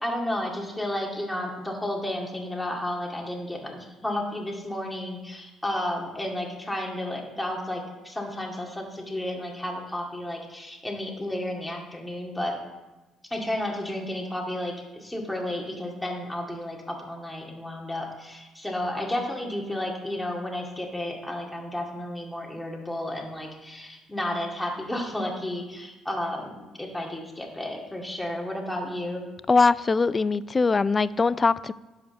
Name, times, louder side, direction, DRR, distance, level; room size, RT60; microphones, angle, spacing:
voice 1, 0.0-12.6 13.3-29.2, left 1 dB, 10° left, -1 dB, 2.2 m, -32 dB
voice 2, 29.5-31.7, left 4 dB, 30° left, 18 dB, 0.3 m, -21 dB
10.5 x 5.0 x 6.4 m, 1.1 s
supercardioid pair, 85°, 0 cm